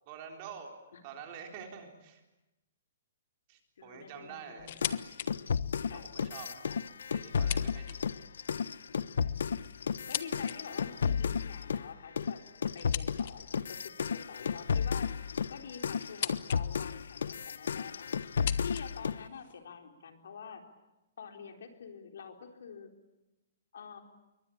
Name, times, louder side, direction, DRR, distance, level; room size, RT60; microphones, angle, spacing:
voice 1, 0.1-2.2 3.5-4.7 5.9-6.6 7.1-8.0, right 7 dB, 25° right, 3 dB, 4.0 m, -47 dB
voice 2, 3.8-5.1 5.9-6.1 6.7-6.8 9.2-9.3 10.1-15.1 15.5-18.1 18.6-20.7 21.2-22.9 23.7-24.0, left 6 dB, 65° left, 4 dB, 4.1 m, -47 dB
sound 1, 4.6-5.3 5.7-5.8 6.6-8.3 9.2-10.6 12.8-13.6 14.8-16.6 16.9-17.5 18.2-19.6, left 11 dB, 40° left, 1.1 m, -40 dB
sound 2, 4.8-11.9 12.2-19.3, left 6 dB, 85° left, 0.9 m, -33 dB
27.5 x 23.5 x 8.8 m, 0.98 s
hypercardioid pair, 175°, 0 cm